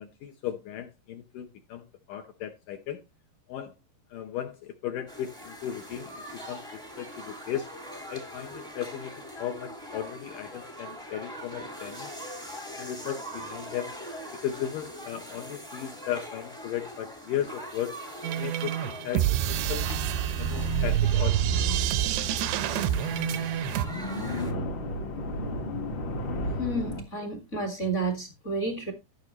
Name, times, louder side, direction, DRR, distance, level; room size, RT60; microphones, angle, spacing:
voice 1, 0.0-3.0 3.5-3.7 4.1-6.6 7.0-7.7 8.1-12.1 12.8-13.9 14.4-17.9 18.4-19.9 20.4-21.8, left 10 dB, 75° left, 1.9 m, -36 dB
sound 1, 5.1-24.5, equal, 5° left, 0.4 m, -42 dB
sound 2, 18.2-23.9, right 12 dB, 90° right, 2.8 m, -27 dB
sound 3, 19.5-27.0, left 2 dB, 55° left, 1.3 m, -35 dB
voice 2, 26.6-28.9, right 2 dB, 35° left, 1.1 m, -31 dB
13.5 x 6.5 x 3.0 m
omnidirectional pair, 4.8 m